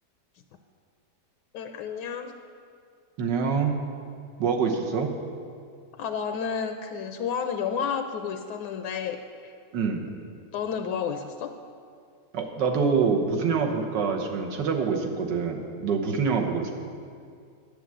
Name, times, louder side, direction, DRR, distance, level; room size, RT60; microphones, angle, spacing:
voice 1, 1.5-2.3 6.0-9.2 9.4-9.5 10.5-11.5, left 7 dB, 80° left, 6 dB, 1.2 m, -31 dB
voice 2, 3.2-3.8 4.4-5.1 9.7-10.1 12.3-16.7, right 5 dB, 90° right, 2 dB, 1.7 m, -25 dB
10.5 x 7.0 x 7.5 m, 2.3 s
omnidirectional pair, 1.8 m